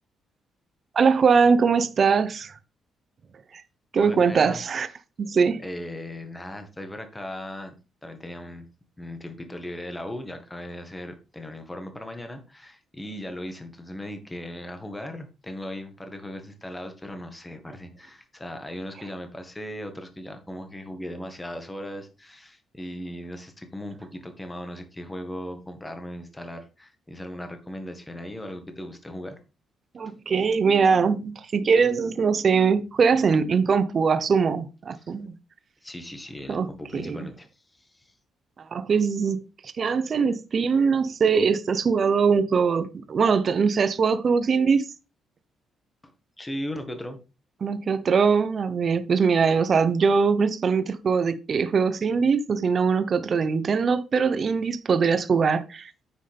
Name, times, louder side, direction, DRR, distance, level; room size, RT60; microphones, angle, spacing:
voice 1, 0.9-2.5 3.9-4.9 5.2-5.6 29.9-35.3 36.5-37.3 38.7-39.4 39.6-44.9 47.6-55.9, right 5 dB, 45° right, 0.9 m, -22 dB
voice 2, 4.0-4.6 5.6-7.7 8.0-8.7 9.0-29.4 35.0-35.1 35.8-37.5 37.7-38.1 46.4-47.2, left 1 dB, 15° left, 1.7 m, -38 dB
9.4 x 6.3 x 3.6 m
cardioid pair, 90°, 0 cm